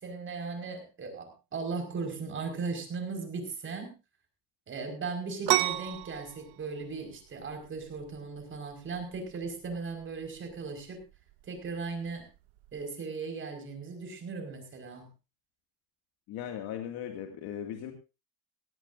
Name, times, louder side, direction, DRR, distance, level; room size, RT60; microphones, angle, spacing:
voice 1, 0.0-3.9 4.7-11.0 11.4-12.3 12.7-15.1, right 4 dB, 30° right, 3 dB, 5.4 m, -37 dB
sound 1, 5.5-12.8, right 19 dB, 90° right, 0.9 m, -35 dB
voice 2, 16.3-17.9, left 9 dB, 70° left, 4 dB, 2.4 m, -38 dB
18.0 x 17.0 x 2.7 m, 0.29 s
cardioid pair, 155°, 38 cm